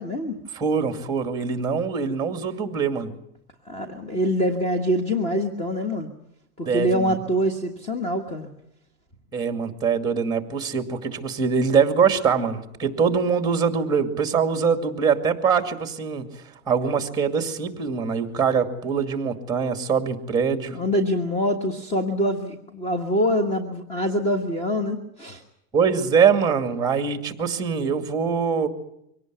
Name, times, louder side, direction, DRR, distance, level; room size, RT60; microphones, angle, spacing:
voice 1, 0.0-0.4 3.6-6.1 6.6-8.5 20.7-25.4, equal, 15° left, 8 dB, 1.4 m, -25 dB
voice 2, 0.5-3.1 6.7-7.2 9.3-16.3 16.7-20.8 25.7-28.7, right 6 dB, 10° right, 7 dB, 2.3 m, -23 dB
24.0 x 18.0 x 9.3 m, 0.79 s
supercardioid pair, 160°, 42 cm